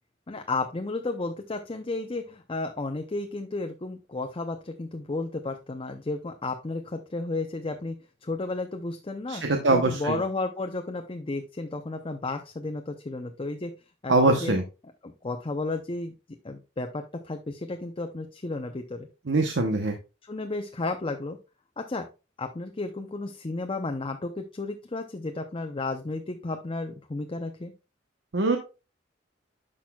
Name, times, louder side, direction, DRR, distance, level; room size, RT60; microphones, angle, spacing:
voice 1, 0.3-7.9 8.2-9.4 9.7-13.7 14.0-14.5 15.0-16.1 16.4-19.1 20.2-21.4 21.8-22.1 22.4-27.7, left 2 dB, 30° left, 5 dB, 0.6 m, -33 dB
voice 2, 9.3-10.2 14.1-14.6 19.3-20.0 28.3-28.6, right 2 dB, 70° right, 4 dB, 0.9 m, -23 dB
10.5 x 6.1 x 2.3 m, 0.30 s
head